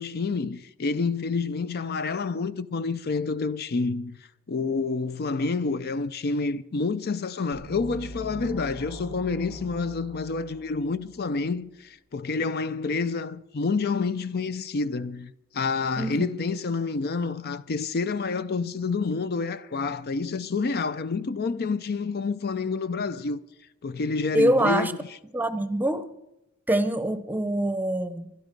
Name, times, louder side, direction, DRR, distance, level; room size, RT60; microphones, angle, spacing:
voice 1, 0.0-23.4 23.8-24.9, left 4 dB, 50° left, 0.5 m, -28 dB
sound 1, 7.5-11.3, right 1 dB, 65° left, 5.8 m, -41 dB
voice 2, 16.0-16.3 24.3-24.9 25.3-26.1 26.7-28.3, right 1 dB, 10° right, 0.7 m, -24 dB
24.0 x 11.0 x 5.2 m
head